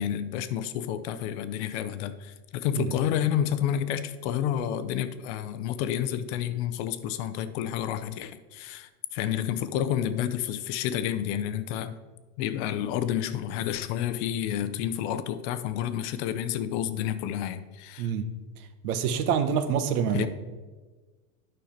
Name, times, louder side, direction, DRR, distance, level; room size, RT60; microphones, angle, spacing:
voice 1, 0.0-12.0 12.4-18.1 20.1-20.3, left 10 dB, 45° left, 0.6 m, -30 dB
voice 2, 18.0-18.3 18.8-20.3, right 7 dB, 70° right, 1.0 m, -26 dB
9.3 x 5.6 x 4.3 m
supercardioid pair, 130°, 46 cm